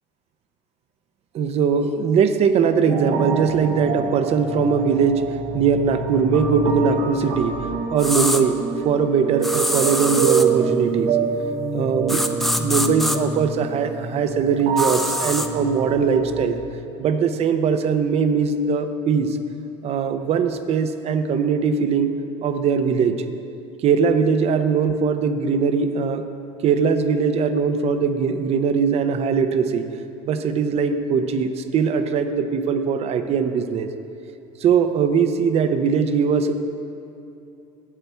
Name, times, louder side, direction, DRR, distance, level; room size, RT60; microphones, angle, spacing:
voice 1, 1.3-5.2 5.5-7.5 7.9-11.2 11.7-12.2 12.6-16.6 17.0-19.4 19.8-22.1 22.4-23.2 23.8-26.3 26.6-29.9 30.2-33.9 34.6-36.6, right 6 dB, 45° right, 9 dB, 0.7 m, -21 dB
sound 1, 2.9-16.5, right 5 dB, 65° right, 1.0 m, -27 dB
sound 2, 8.0-8.4 9.4-10.5 12.1-13.2 14.8-15.5, equal, ahead, 0.5 m, -24 dB
12.0 x 8.0 x 3.4 m, 2.8 s
supercardioid pair, 100°, 15 cm